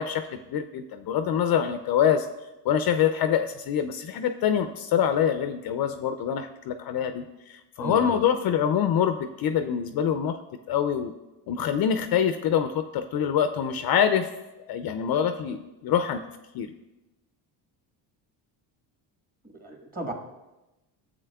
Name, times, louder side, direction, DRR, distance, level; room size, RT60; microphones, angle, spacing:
voice 1, 0.0-2.3 2.6-10.4 10.7-11.1 11.5-14.3 14.6-16.2 16.5-16.7, left 8 dB, 50° left, 9 dB, 0.5 m, -25 dB
voice 2, 7.8-8.2 19.6-20.1, right 2 dB, 20° right, 2 dB, 1.4 m, -34 dB
11.0 x 7.6 x 2.3 m, 1.0 s
supercardioid pair, 90°, 47 cm